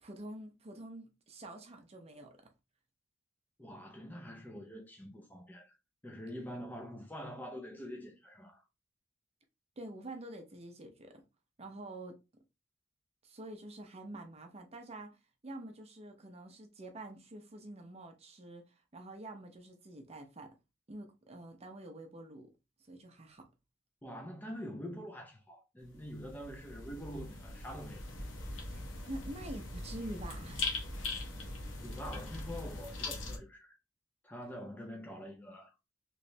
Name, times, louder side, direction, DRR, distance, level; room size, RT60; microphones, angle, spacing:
voice 1, 0.0-2.4 9.8-11.2 11.6-12.2 13.2-15.1 15.4-20.5 20.9-22.5 22.9-23.5 28.7-30.7, right 1 dB, 35° right, 0.6 m, -47 dB
voice 2, 3.6-5.7 6.0-8.6 24.0-28.1 31.8-33.7 34.2-35.7, equal, 10° left, 0.5 m, -45 dB
sound 1, 25.8-33.4, left 2 dB, 80° left, 0.9 m, -41 dB
3.1 x 3.1 x 2.7 m
head